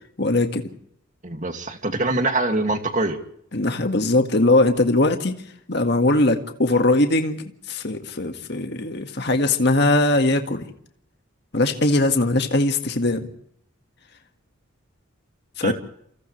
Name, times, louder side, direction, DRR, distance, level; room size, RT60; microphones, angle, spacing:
voice 1, 0.2-0.6 3.5-5.4 5.7-10.6 11.5-13.3 15.6-15.7, left 2 dB, 50° left, 5 dB, 1.9 m, -20 dB
voice 2, 1.2-3.2 15.6-15.7, right 2 dB, 35° right, 5 dB, 2.4 m, -24 dB
29.5 x 28.0 x 3.3 m, 0.71 s
head